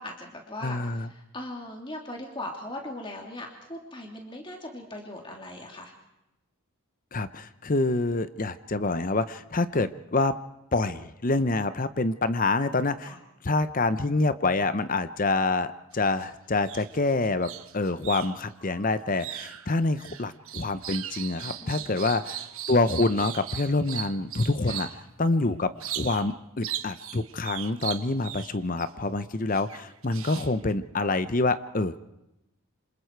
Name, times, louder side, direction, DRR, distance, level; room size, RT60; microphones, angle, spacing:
voice 1, 0.0-5.9 13.0-13.2 21.6-22.0 24.6-24.9, left 1 dB, 20° left, 1 dB, 2.9 m, -39 dB
voice 2, 0.6-1.1 7.1-10.3 10.7-13.2 13.4-24.9 25.2-32.0, left 3 dB, 35° left, 12 dB, 0.7 m, -26 dB
sound 1, 15.9-16.3 16.6-25.0 25.8-26.3 26.6-28.9 29.5-30.7, right 11 dB, 70° right, 1.2 m, -38 dB
27.0 x 27.0 x 4.6 m, 0.91 s
head